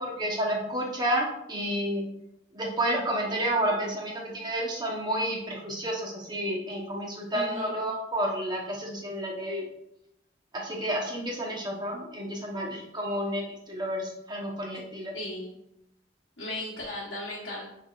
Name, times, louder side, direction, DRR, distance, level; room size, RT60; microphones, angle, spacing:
voice 1, 0.0-2.0 2.5-9.6 10.5-15.1, right 1 dB, 25° right, -1 dB, 0.9 m, -30 dB
voice 2, 7.3-7.7 15.1-15.6 16.4-17.7, left 1 dB, 65° left, -6 dB, 1.0 m, -36 dB
6.1 x 3.6 x 2.4 m, 0.82 s
head